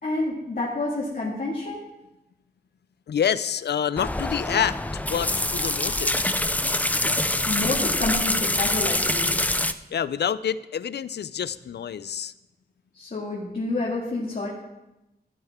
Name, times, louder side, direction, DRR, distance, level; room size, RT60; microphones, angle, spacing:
voice 1, 0.0-1.8 7.4-9.4 12.9-14.5, left 2 dB, 55° left, -5 dB, 2.2 m, -28 dB
voice 2, 3.1-4.8 5.1-6.3 9.9-12.3, left 8 dB, 85° left, 17 dB, 0.4 m, -27 dB
sound 1, 4.0-9.7, left 1 dB, 10° left, 0.4 m, -25 dB
15.0 x 9.6 x 3.6 m, 0.95 s
wide cardioid pair, 135°, 17 cm